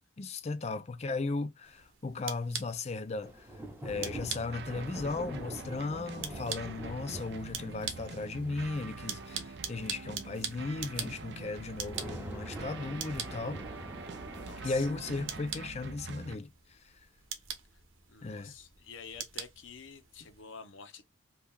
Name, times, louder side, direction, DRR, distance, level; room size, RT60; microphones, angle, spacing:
voice 1, 0.2-3.5 3.8-13.6 14.6-16.9 18.2-18.5, left 3 dB, 30° left, 0.4 m, -36 dB
sound 1, 1.6-20.4, right 8 dB, 80° right, 0.9 m, -44 dB
sound 2, 3.2-15.5, right 1 dB, 10° right, 0.7 m, -46 dB
sound 3, 3.9-16.4, right 4 dB, 55° right, 0.4 m, -45 dB
voice 2, 14.4-14.9 17.7-17.8 18.1-21.1, left 6 dB, 70° left, 0.7 m, -49 dB
2.8 x 2.3 x 3.5 m
head